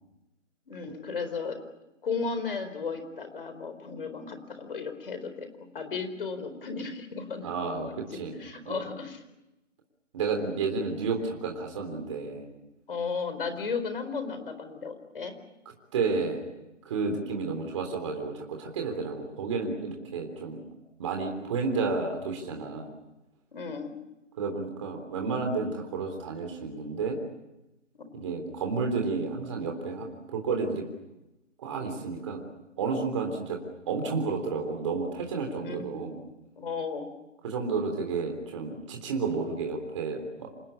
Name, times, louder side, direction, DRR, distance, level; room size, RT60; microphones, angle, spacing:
voice 1, 0.7-1.6 2.0-7.5 7.9-8.0 8.4-9.2 12.9-15.3 23.5-23.9 28.0-28.3 35.6-36.1 36.6-37.1, left 5 dB, 45° left, 9 dB, 4.2 m, -35 dB
voice 2, 7.4-8.4 8.7-8.8 10.1-12.5 15.9-16.4 16.9-20.6 21.0-22.9 24.4-27.2 28.1-30.8 31.6-32.4 32.8-36.2 37.4-40.5, right 4 dB, 25° right, 2 dB, 3.6 m, -31 dB
27.0 x 19.5 x 8.8 m, 0.95 s
hypercardioid pair, 170°, 37 cm